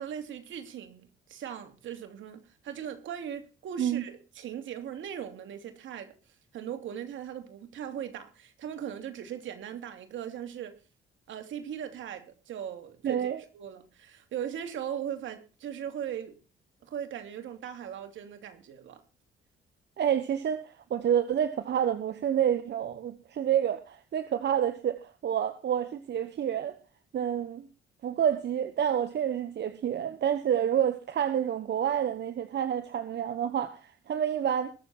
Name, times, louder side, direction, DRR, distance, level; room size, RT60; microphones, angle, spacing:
voice 1, 0.0-6.1 6.5-10.7 11.3-13.2 13.5-16.4 16.8-19.0, right 9 dB, 75° right, 2.9 m, -39 dB
voice 2, 13.0-13.4 20.0-26.8 27.1-27.7 28.0-34.7, right 9 dB, 60° right, 1.4 m, -28 dB
22.0 x 7.3 x 4.4 m
cardioid pair, 90°, 20 cm